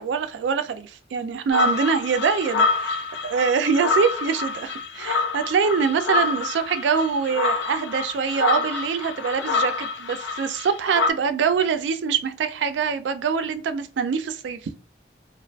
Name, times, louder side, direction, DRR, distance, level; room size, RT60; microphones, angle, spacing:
voice 1, 0.0-14.6, right 6 dB, 80° right, 0.3 m, -24 dB
sound 1, 1.5-11.1, left 4 dB, 75° left, 0.4 m, -26 dB
2.5 x 2.4 x 2.2 m
head